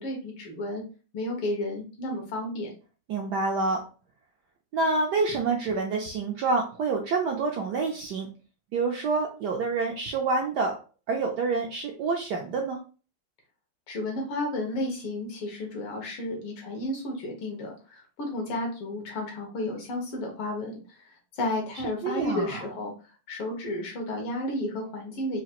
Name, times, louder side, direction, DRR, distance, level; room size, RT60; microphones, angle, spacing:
voice 1, 0.0-0.8 1.1-2.7 13.9-22.9 23.3-25.4, left 1 dB, 80° left, 1 dB, 2.2 m, -32 dB
voice 2, 3.1-3.8 4.7-8.3 8.7-10.8 11.1-12.8 22.0-22.6, right 3 dB, 70° right, 1 dB, 1.0 m, -27 dB
4.9 x 2.4 x 2.9 m, 0.35 s
omnidirectional pair, 2.4 m